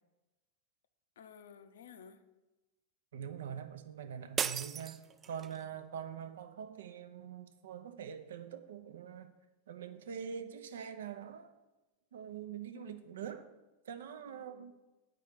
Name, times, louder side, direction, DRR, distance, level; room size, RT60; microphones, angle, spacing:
voice 1, 1.2-2.2 12.7-13.2 14.3-14.7, left 7 dB, 60° left, 0.7 m, -55 dB
voice 2, 3.1-5.0 5.2-9.3 9.7-11.5 12.1-13.5 13.9-14.7, right 8 dB, 60° right, 0.7 m, -44 dB
sound 1, 4.4-5.6, right 7 dB, 25° right, 0.3 m, -37 dB
9.4 x 5.3 x 6.8 m
figure-of-eight pair, 90°, 0 cm